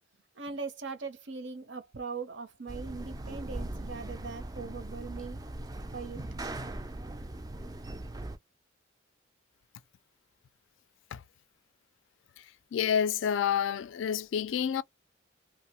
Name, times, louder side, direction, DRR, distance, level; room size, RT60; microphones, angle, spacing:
voice 1, 0.4-5.4 5.9-6.2, right 4 dB, 60° right, 0.7 m, -40 dB
sound 1, 2.7-8.4, right 1 dB, 20° right, 0.3 m, -40 dB
voice 2, 12.7-14.8, left 8 dB, 70° left, 0.3 m, -28 dB
2.7 x 2.0 x 2.9 m
head